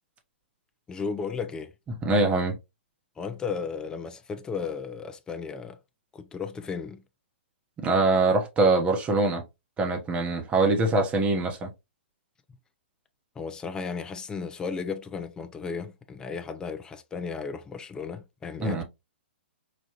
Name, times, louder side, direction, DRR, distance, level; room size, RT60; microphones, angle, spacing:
voice 1, 0.9-1.7 3.2-5.8 6.1-7.0 13.4-18.8, left 5 dB, 10° left, 0.5 m, -34 dB
voice 2, 2.0-2.5 7.8-9.4 9.8-11.7 18.6-18.8, right 3 dB, 20° right, 1.0 m, -23 dB
5.0 x 2.5 x 2.9 m
hypercardioid pair, 130°, 6 cm